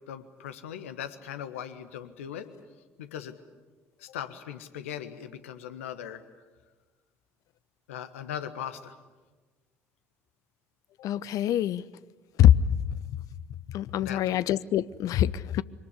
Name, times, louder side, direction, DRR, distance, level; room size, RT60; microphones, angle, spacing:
voice 1, 0.1-2.5 3.0-3.3 4.0-6.2 7.9-8.9 14.0-14.2, left 9 dB, 70° left, 10 dB, 1.5 m, -39 dB
voice 2, 11.0-11.8 12.4-13.1 13.7-15.6, left 11 dB, 50° left, 19 dB, 0.7 m, -24 dB
25.0 x 19.0 x 10.0 m, 1.3 s
figure-of-eight pair, 55°, 7 cm